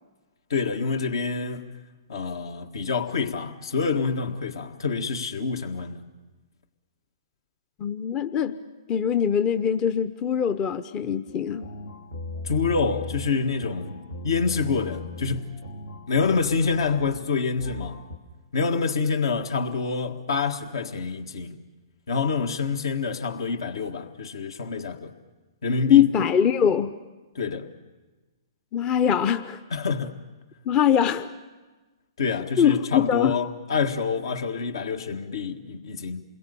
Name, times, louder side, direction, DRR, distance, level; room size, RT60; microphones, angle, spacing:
voice 1, 0.5-1.7 2.1-6.0 12.4-15.5 16.1-18.0 18.5-21.6 22.1-25.1 25.6-26.1 27.3-27.7 29.7-30.2 32.2-36.2, left 4 dB, 65° left, 1.7 m, -27 dB
voice 2, 7.8-8.6 8.9-11.7 25.9-26.9 28.7-29.6 30.7-31.3 32.6-33.4, left 9 dB, 25° left, 0.8 m, -22 dB
sound 1, 11.3-18.2, left 2 dB, 85° left, 2.6 m, -38 dB
28.5 x 21.5 x 6.9 m
figure-of-eight pair, 120°, 3 cm